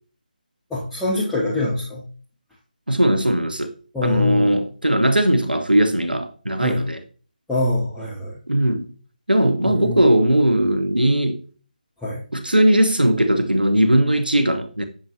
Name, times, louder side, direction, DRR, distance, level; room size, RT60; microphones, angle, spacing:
voice 1, 0.7-2.0 3.9-4.6 6.6-6.8 7.5-8.4 9.6-10.0 12.0-12.2, left 2 dB, 5° left, 0.9 m, -24 dB
voice 2, 2.9-3.7 4.0-7.0 8.5-8.9 9.3-11.4 12.3-14.8, right 1 dB, 85° right, 0.8 m, -19 dB
9.1 x 6.5 x 2.9 m
figure-of-eight pair, 155°, 5 cm